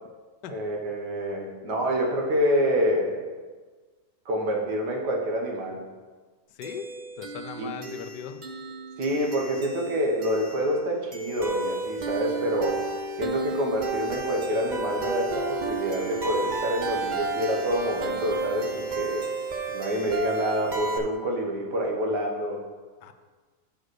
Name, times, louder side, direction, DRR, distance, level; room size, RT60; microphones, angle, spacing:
voice 1, 0.5-3.3 4.3-5.8 7.6-7.7 9.0-12.9 13.2-19.3 19.7-22.6, equal, 75° right, 0 dB, 1.8 m, -27 dB
voice 2, 6.5-8.4 23.0-23.1, left 8 dB, 90° left, 9 dB, 1.2 m, -39 dB
sound 1, 6.6-21.0, right 3 dB, 50° right, 0.5 m, -32 dB
7.3 x 5.1 x 6.2 m, 1.4 s
omnidirectional pair, 1.8 m